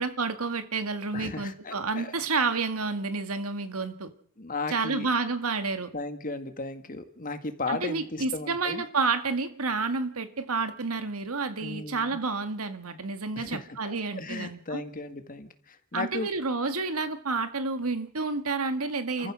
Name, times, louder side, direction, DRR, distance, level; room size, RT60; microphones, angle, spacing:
voice 1, 0.0-4.1 4.7-5.9 7.7-14.8 15.9-19.3, right 4 dB, 85° right, 9 dB, 1.8 m, -30 dB
voice 2, 1.1-2.1 4.4-5.1 5.9-8.8 11.6-12.2 13.4-16.3 19.2-19.3, left 3 dB, 40° left, 8 dB, 1.8 m, -36 dB
29.0 x 14.5 x 6.3 m, 0.62 s
head